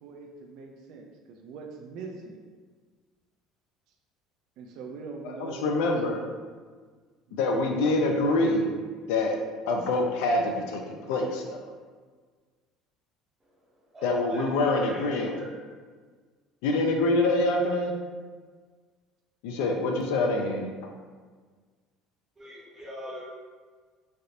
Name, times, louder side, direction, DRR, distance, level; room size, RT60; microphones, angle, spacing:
voice 1, 0.0-2.4 4.6-5.8 7.3-7.4, right 4 dB, 55° right, 2 dB, 0.3 m, -42 dB
voice 2, 5.6-6.2 7.3-8.7 9.1-9.4 9.7-11.6 14.0-15.3 16.6-17.9 19.4-20.7, left 2 dB, 85° left, 2 dB, 0.4 m, -25 dB
voice 3, 13.9-15.0 15.3-15.5 22.4-23.3, equal, 15° right, -10 dB, 0.6 m, -41 dB
3.3 x 2.5 x 2.7 m, 1.5 s
cardioid pair, 170°, 0 cm